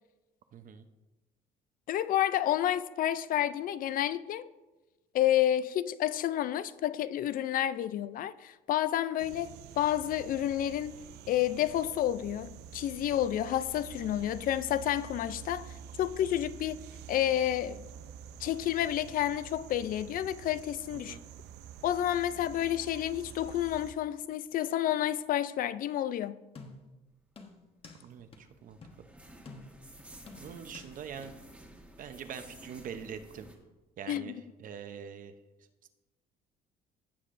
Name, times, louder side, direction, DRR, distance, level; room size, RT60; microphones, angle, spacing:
voice 1, 0.5-0.9 20.9-21.2 28.0-28.8 30.4-31.4 32.0-33.5 34.0-35.3 35.8-35.9, right 7 dB, 55° right, 0.7 m, -44 dB
voice 2, 1.9-4.5 5.1-10.9 11.3-16.8 17.1-17.8 18.4-21.2 21.8-26.4 34.1-34.4, left 12 dB, 55° left, 0.4 m, -30 dB
sound 1, 9.2-23.9, right 8 dB, 85° right, 0.5 m, -48 dB
sound 2, 26.5-27.0 27.4-28.0 28.3-28.4 28.8-29.0 29.4-29.9 30.3-30.9 31.2-31.3, left 3 dB, 35° left, 1.2 m, -49 dB
sound 3, 27.6-33.6, right 1 dB, 5° right, 1.5 m, -53 dB
16.0 x 6.5 x 2.6 m
cardioid pair, 110°, 17 cm